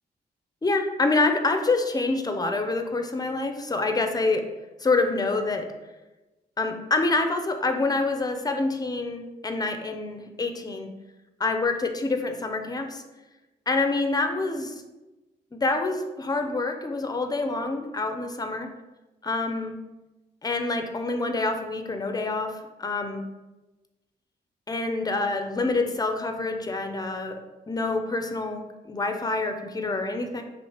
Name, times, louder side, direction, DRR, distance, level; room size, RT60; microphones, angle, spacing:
voice 1, 0.6-4.4 4.8-5.7 6.6-10.9 11.4-13.0 13.7-14.7 15.5-18.7 19.2-19.8 20.4-22.5 22.8-23.2 24.7-27.4 27.7-30.4, left 3 dB, 20° left, 6 dB, 0.5 m, -26 dB
3.0 x 2.8 x 3.0 m, 1.1 s
supercardioid pair, 45°, 19 cm